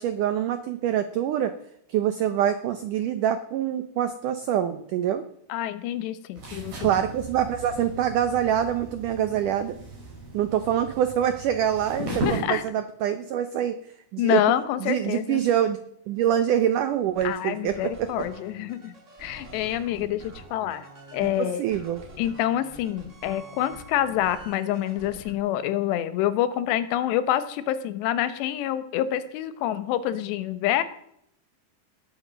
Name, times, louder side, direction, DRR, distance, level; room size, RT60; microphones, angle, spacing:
voice 1, 0.0-1.5 1.9-5.2 6.8-9.7 10.3-13.8 14.1-14.4 14.8-15.8 16.1-18.1 21.4-22.0, right 10 dB, 85° right, 10 dB, 1.8 m, -25 dB
voice 2, 5.5-6.8 12.0-12.6 14.2-15.4 17.2-20.9 21.1-21.6 22.2-30.8, left 12 dB, 85° left, 13 dB, 3.2 m, -27 dB
sound 1, 6.3-12.4, right 1 dB, 70° right, 8.2 m, -36 dB
sound 2, 17.1-25.3, right 2 dB, 35° right, 1.2 m, -47 dB
19.0 x 9.1 x 7.5 m, 0.74 s
omnidirectional pair, 4.8 m